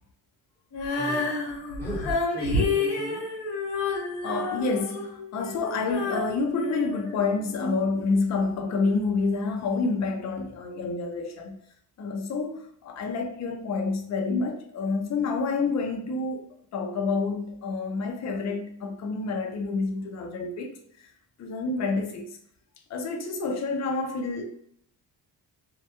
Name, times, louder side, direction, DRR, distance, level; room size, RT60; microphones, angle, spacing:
Female singing, 0.7-7.8, left 3 dB, 75° left, 0.8 m, -30 dB
voice 1, 0.9-1.5 1.8-3.3, equal, 5° left, 1.2 m, -35 dB
voice 2, 4.2-11.6 12.0-16.5 16.7-20.7 21.4-22.4 22.9-24.4, left 4 dB, 40° left, 0.5 m, -28 dB
2.1 x 2.1 x 2.8 m
cardioid pair, 95°, 42 cm